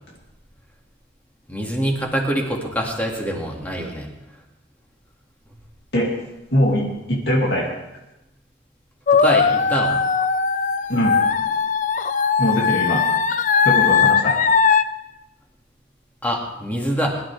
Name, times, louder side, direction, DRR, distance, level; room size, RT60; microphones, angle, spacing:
voice 1, 1.5-4.1 9.1-10.0 16.2-17.2, equal, 10° left, -1 dB, 2.3 m, -24 dB
voice 2, 6.5-7.7 10.9-11.2 12.4-13.0 13.6-14.4, equal, 60° left, -3 dB, 2.6 m, -21 dB
sound 1, 9.1-14.8, left 6 dB, 40° left, 0.5 m, -19 dB
22.0 x 12.0 x 3.5 m, 0.94 s
head